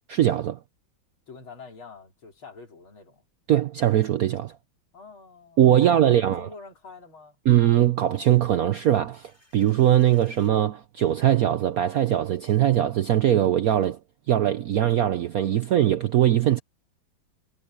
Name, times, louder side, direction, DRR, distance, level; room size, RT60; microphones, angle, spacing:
voice 1, 0.1-0.6 3.5-4.5 5.6-6.5 7.5-14.0 14.3-16.6, right 11 dB, 65° right, 0.9 m, -21 dB
voice 2, 1.3-3.2 4.9-7.4, left 4 dB, 85° left, 4.5 m, -46 dB
sound 1, 9.0-10.6, left 1 dB, 30° left, 7.3 m, -59 dB
omnidirectional pair, 2.2 m